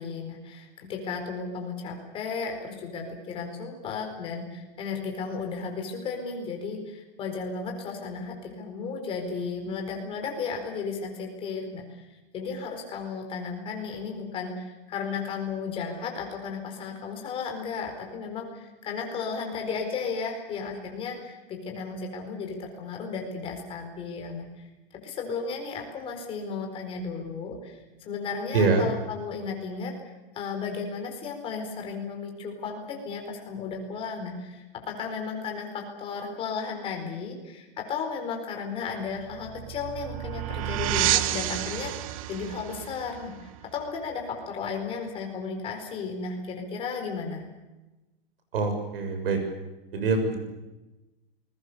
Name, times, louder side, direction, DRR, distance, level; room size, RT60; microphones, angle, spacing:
voice 1, 0.0-11.8 12.3-24.7 25.0-29.9 30.3-41.9 42.3-47.4, left 5 dB, 20° left, 3 dB, 4.5 m, -34 dB
voice 2, 28.5-28.9 48.5-49.4 49.9-50.4, right 3 dB, 70° right, 6 dB, 6.7 m, -24 dB
sound 1, 39.1-44.4, right 14 dB, 35° right, 0.9 m, -30 dB
28.0 x 21.0 x 6.9 m, 1.1 s
supercardioid pair, 165°, 29 cm